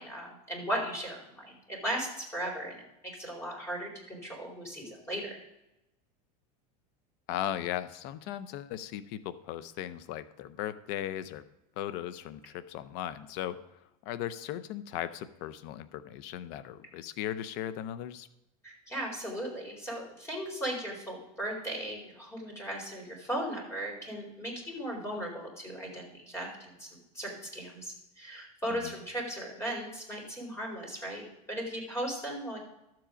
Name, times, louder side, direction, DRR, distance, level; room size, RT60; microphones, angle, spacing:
voice 1, 0.0-5.4 18.6-26.9 27.1-32.6, right 1 dB, 15° left, -1 dB, 4.4 m, -37 dB
voice 2, 7.3-11.4 11.8-18.3 28.7-28.9, left 11 dB, 60° left, 14 dB, 0.8 m, -37 dB
12.5 x 7.7 x 5.1 m, 0.92 s
supercardioid pair, 125°, 19 cm